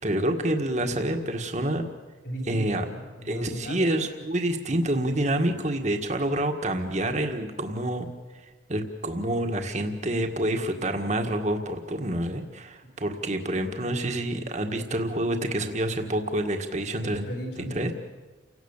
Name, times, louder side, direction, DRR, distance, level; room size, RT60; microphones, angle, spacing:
voice 1, 0.0-1.8 2.5-2.8 3.3-8.1 8.7-17.3 17.7-17.9, right 1 dB, 40° right, 4 dB, 1.9 m, -27 dB
voice 2, 2.2-4.1 13.8-14.2 17.0-17.9, equal, 70° left, -2 dB, 7.9 m, -36 dB
29.5 x 17.5 x 7.4 m, 1.3 s
head